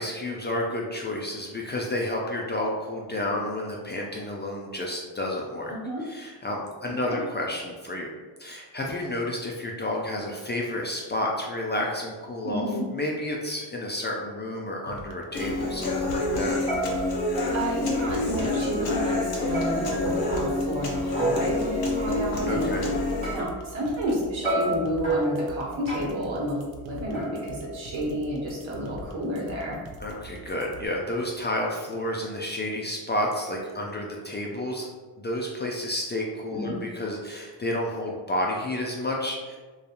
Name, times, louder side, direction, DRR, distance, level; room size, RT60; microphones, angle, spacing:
voice 1, 0.0-5.8 6.0-8.1 8.4-12.7 12.9-16.6 21.2-21.6 22.5-22.8 30.0-34.9 35.2-39.6, left 1 dB, 25° left, -2 dB, 0.3 m, -30 dB
voice 2, 5.7-6.0 7.0-7.2 12.4-12.8 17.5-22.7 23.3-29.8 36.5-36.8, equal, 75° right, -4 dB, 1.0 m, -30 dB
sound 1, 14.8-14.9 15.4-15.6 16.0-16.4 16.7-18.0 18.4-18.5 19.5-21.6 23.2-24.1 24.4-26.3 27.1-28.3, right 2 dB, 30° right, 1.4 m, -32 dB
sound 2, 14.9-30.9, right 2 dB, 50° right, 0.5 m, -44 dB
Human voice / Acoustic guitar, 15.3-23.3, left 2 dB, 50° left, 0.8 m, -27 dB
2.7 x 2.3 x 2.4 m, 1.4 s
cardioid pair, 55°, 47 cm